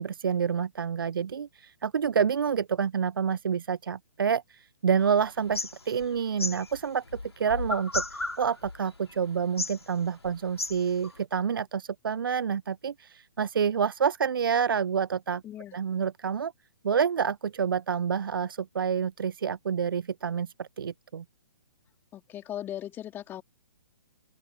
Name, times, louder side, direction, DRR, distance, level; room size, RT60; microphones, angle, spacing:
voice 1, 0.0-15.4 15.7-16.5 16.8-21.2, right 7 dB, 60° right, 0.5 m, -28 dB
sound 1, 5.0-11.2, left 3 dB, 75° left, 1.7 m, -35 dB
voice 2, 15.4-15.8 22.1-23.4, left 11 dB, 15° left, 2.9 m, -38 dB
figure-of-eight pair, 130°, 13 cm